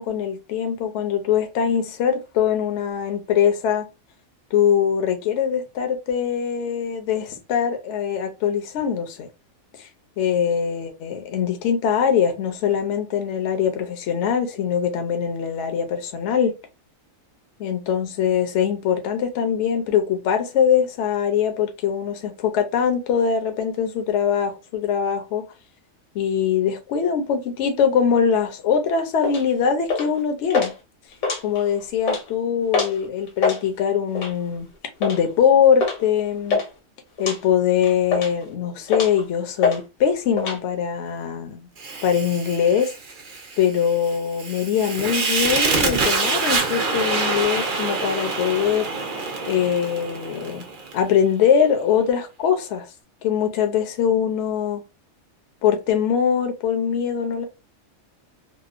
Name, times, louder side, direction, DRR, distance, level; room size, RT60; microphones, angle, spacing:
voice 1, 0.0-3.9 4.5-9.3 9.8-9.9 10.2-16.5 17.6-25.4 26.1-30.7 31.4-34.7 35.0-36.6 37.2-41.7 42.0-42.9 43.6-48.9 49.5-50.7 50.9-52.9 53.2-54.8 55.6-57.4, left 8 dB, 65° left, 0.8 m, -22 dB
sound 1, 29.2-29.4 29.9-30.2 30.5-30.7 31.1-31.7 32.0-32.2 32.7-33.0 33.3-33.6 34.2-34.4 35.0-35.2 35.8-36.0 36.2-36.7 37.2-37.4 37.8-38.4 38.9-39.2 39.6-39.8 40.1-40.6, left 4 dB, 80° left, 1.2 m, -24 dB
Fire, 41.8-51.0, right 3 dB, 50° right, 0.6 m, -26 dB
2.8 x 2.0 x 2.4 m
omnidirectional pair, 1.4 m